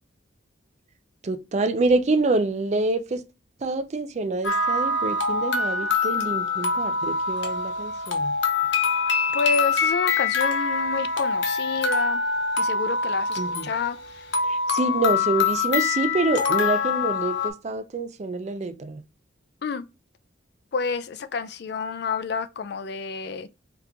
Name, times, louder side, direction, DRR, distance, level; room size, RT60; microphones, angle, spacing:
voice 1, 1.2-3.2 3.6-8.4 13.4-13.7 14.4-19.0, right 3 dB, 35° right, 0.4 m, -26 dB
sound 1, 4.4-17.5, left 4 dB, 75° left, 0.9 m, -24 dB
voice 2, 9.3-12.2 12.6-14.3 19.6-19.9 20.7-23.5, left 5 dB, 60° left, 0.4 m, -29 dB
3.4 x 2.9 x 3.8 m
head